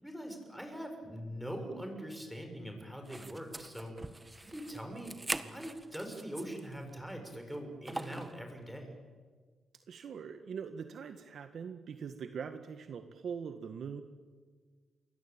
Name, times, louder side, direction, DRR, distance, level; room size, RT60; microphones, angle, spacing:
voice 1, 0.0-4.0 4.4-8.9, equal, ahead, 4 dB, 6.7 m, -42 dB
sound 1, 3.1-6.7 7.1-7.2 7.9-8.4, right 2 dB, 20° right, 1.6 m, -42 dB
voice 2, 9.9-14.0, right 6 dB, 65° right, 7 dB, 1.7 m, -42 dB
28.5 x 22.5 x 9.0 m, 1.5 s
cardioid pair, 85°, 0 cm